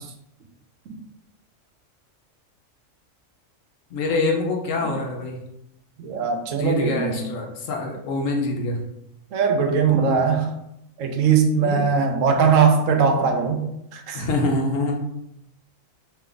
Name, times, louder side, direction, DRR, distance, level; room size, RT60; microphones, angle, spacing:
voice 1, 3.9-5.4 6.5-8.8 9.9-10.3 11.6-12.0 14.1-14.9, left 2 dB, 80° left, 2 dB, 1.1 m, -25 dB
voice 2, 6.0-7.3 9.3-10.5 11.0-13.7 13.9-14.3, right 6 dB, 80° right, 5 dB, 1.0 m, -20 dB
3.4 x 3.0 x 3.8 m, 0.81 s
omnidirectional pair, 1.3 m